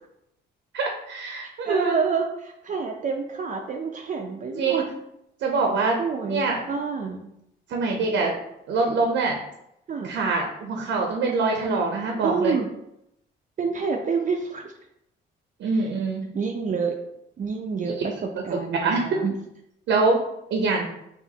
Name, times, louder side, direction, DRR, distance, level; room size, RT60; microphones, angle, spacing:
voice 1, 0.7-2.0 4.6-4.9 5.4-6.0 6.3-6.6 7.7-8.4 8.7-9.4 10.0-12.6 15.6-16.2 17.8-18.1 18.7-19.2 19.9-20.2 20.5-20.9, right 3 dB, 75° right, 1 dB, 0.7 m, -24 dB
voice 2, 1.6-4.8 6.0-7.3 9.9-10.1 12.2-12.7 13.6-14.7 15.7-15.9 16.3-17.0 17.4-19.4, right 5 dB, 40° right, 2 dB, 0.5 m, -28 dB
4.9 x 2.5 x 2.8 m, 0.80 s
cardioid pair, 90°, 20 cm